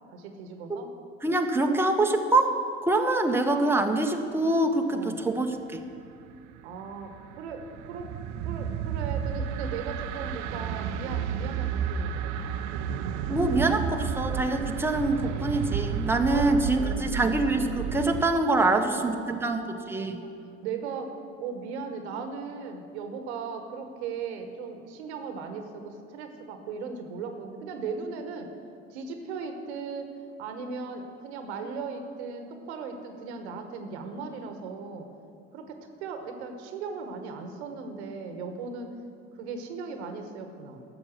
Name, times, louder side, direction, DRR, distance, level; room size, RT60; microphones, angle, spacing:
voice 1, 0.1-0.9 4.9-5.2 6.6-8.1 8.4-12.4 16.3-16.5 16.8-17.2 18.6-20.3 20.6-28.5 28.9-30.1 30.4-35.1 35.5-38.9 39.3-40.8, right 5 dB, 75° right, 6 dB, 1.2 m, -37 dB
voice 2, 1.2-5.5 13.3-19.6 19.9-20.2, right 2 dB, 5° right, 3 dB, 1.1 m, -25 dB
sound 1, 6.5-18.3, right 8 dB, 55° right, 0.7 m, -32 dB
12.0 x 7.2 x 7.4 m, 2.5 s
hypercardioid pair, 65°, 34 cm